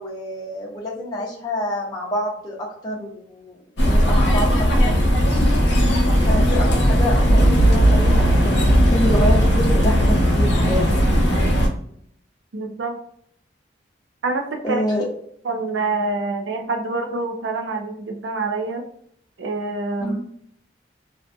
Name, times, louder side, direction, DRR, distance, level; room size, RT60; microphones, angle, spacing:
voice 1, 0.0-3.6 3.8-4.6 4.8-5.0 6.3-11.2 14.6-15.1 20.0-20.2, equal, 20° left, -4 dB, 0.5 m, -27 dB
sound 1, 3.8-11.7, equal, 65° left, 0.6 m, -17 dB
voice 2, 12.5-13.0 14.2-14.8 15.4-18.8 19.4-20.2, right 3 dB, 75° right, 3 dB, 0.4 m, -26 dB
2.5 x 2.5 x 2.2 m, 0.67 s
head